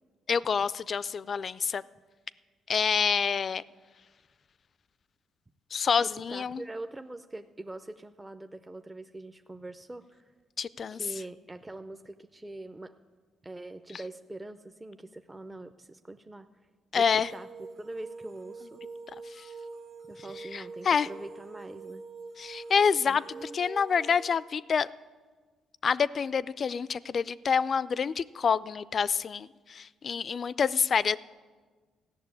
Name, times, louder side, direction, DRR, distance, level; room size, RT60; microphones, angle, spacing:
voice 1, 0.3-1.8 2.7-3.6 5.7-6.6 10.6-11.0 16.9-17.3 19.4-19.5 20.5-21.1 22.4-24.9 25.8-31.2, left 6 dB, 45° left, 18 dB, 0.4 m, -27 dB
voice 2, 6.0-10.2 10.9-13.0 13.4-16.5 17.0-17.5 17.8-18.8 20.1-22.0 23.1-23.6, right 2 dB, 15° right, 8 dB, 0.5 m, -43 dB
sound 1, 17.0-24.3, right 4 dB, 65° right, 1.5 m, -45 dB
15.0 x 6.8 x 9.6 m, 1.4 s
cardioid pair, 90°, 0 cm